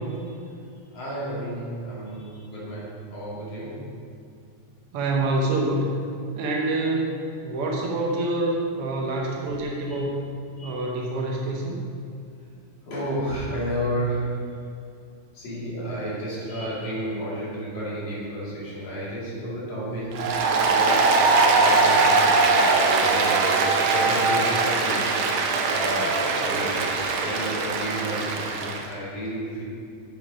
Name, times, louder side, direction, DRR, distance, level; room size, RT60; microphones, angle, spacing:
voice 1, 0.8-3.9 9.9-10.0 10.6-10.9 12.8-14.6 15.3-25.0 25.7-29.6, right 1 dB, 55° left, -8 dB, 3.8 m, -32 dB
voice 2, 4.9-5.9 6.4-10.3 10.6-11.8, right 2 dB, 65° right, -2 dB, 1.5 m, -26 dB
Applause, 20.1-28.8, right 3 dB, 80° right, 1.2 m, -21 dB
8.7 x 7.6 x 5.3 m, 2.4 s
omnidirectional pair, 3.6 m